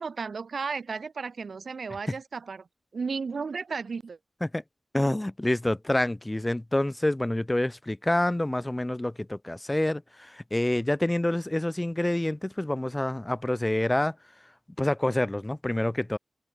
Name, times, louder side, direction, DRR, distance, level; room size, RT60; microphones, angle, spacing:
voice 1, 0.0-2.7 2.9-4.2, right 5 dB, 70° right, 2.1 m, -34 dB
voice 2, 4.9-14.1 14.8-16.2, left 1 dB, 15° left, 1.2 m, -27 dB
wide cardioid pair, 80°, 0 cm